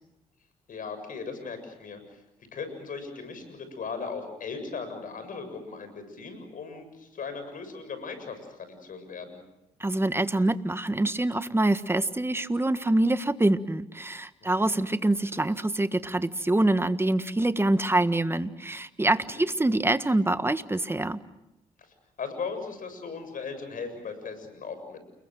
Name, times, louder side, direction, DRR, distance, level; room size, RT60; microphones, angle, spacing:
voice 1, 0.7-2.2 2.5-9.4 14.4-14.8 19.3-19.4 22.2-25.0, left 5 dB, 60° left, 9 dB, 7.3 m, -38 dB
voice 2, 9.8-21.2, right 2 dB, 15° right, 12 dB, 1.6 m, -25 dB
29.5 x 22.0 x 7.7 m, 0.90 s
hypercardioid pair, 50°, 16 cm